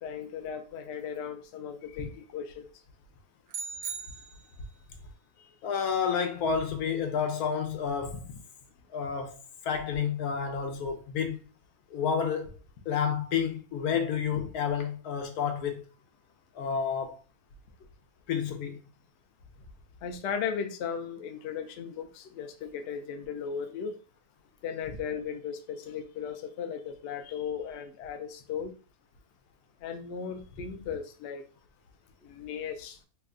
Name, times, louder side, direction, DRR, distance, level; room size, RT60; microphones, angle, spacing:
voice 1, 0.0-2.6 5.4-5.5 20.0-24.0 24.6-28.8 29.8-31.4 32.2-33.0, left 7 dB, 65° left, 0.7 m, -36 dB
sound 1, 3.5-4.8, right 6 dB, 70° right, 0.9 m, -39 dB
voice 2, 5.6-8.3 8.9-11.4 11.9-12.6 12.9-15.8 16.5-17.2 18.3-18.8, left 7 dB, 90° left, 1.2 m, -30 dB
3.2 x 2.2 x 3.6 m
omnidirectional pair, 1.5 m